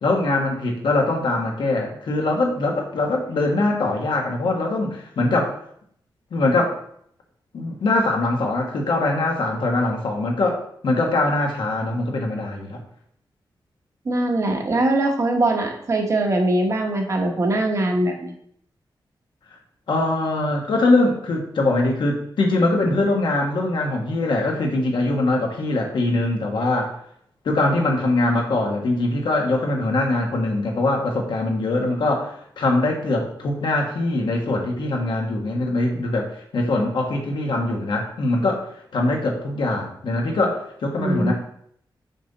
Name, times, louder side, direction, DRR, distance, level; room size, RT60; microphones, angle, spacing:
voice 1, 0.0-5.5 6.3-6.7 7.5-12.8 19.9-27.0 27.4-36.3 36.5-41.3, left 2 dB, 70° left, 1 dB, 1.4 m, -22 dB
voice 2, 14.0-18.3 41.0-41.3, right 1 dB, 40° right, 2 dB, 1.1 m, -22 dB
6.1 x 5.5 x 4.1 m, 0.67 s
wide cardioid pair, 175°, 8 cm